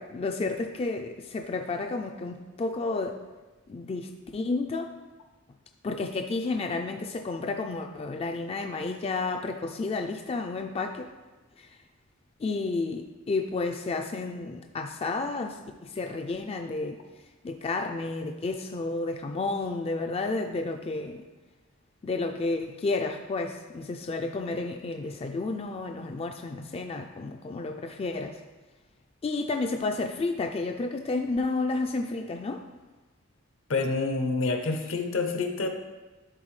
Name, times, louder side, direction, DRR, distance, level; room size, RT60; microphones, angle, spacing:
voice 1, 0.0-3.2 3.7-4.9 5.8-11.1 11.6-11.8 12.4-17.0 17.4-21.2 22.0-28.4 29.2-32.6, left 3 dB, 30° left, 5 dB, 0.3 m, -31 dB
voice 2, 33.7-35.7, left 3 dB, 75° left, 5 dB, 0.8 m, -27 dB
11.5 x 3.8 x 3.2 m, 1.2 s
head